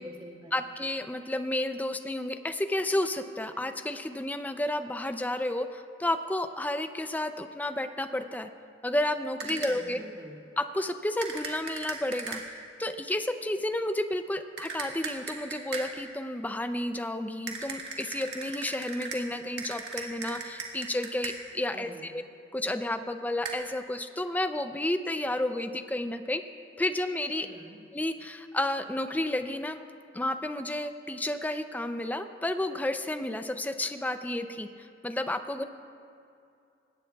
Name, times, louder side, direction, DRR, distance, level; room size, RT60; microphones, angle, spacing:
voice 1, 0.0-0.7 9.4-10.4 21.7-22.1 27.4-27.8, equal, 30° right, -2 dB, 1.8 m, -47 dB
voice 2, 0.5-8.5 8.8-10.0 10.6-12.4 12.8-22.2 22.5-26.4 26.8-27.5 27.9-29.8 30.1-35.6, left 1 dB, 10° left, 9 dB, 0.4 m, -31 dB
sound 1, 9.4-9.9 11.2-12.7 14.6-16.1 17.5-21.6 23.4-23.5, right 4 dB, 65° right, 1.7 m, -39 dB
20.5 x 17.0 x 2.3 m, 2.5 s
head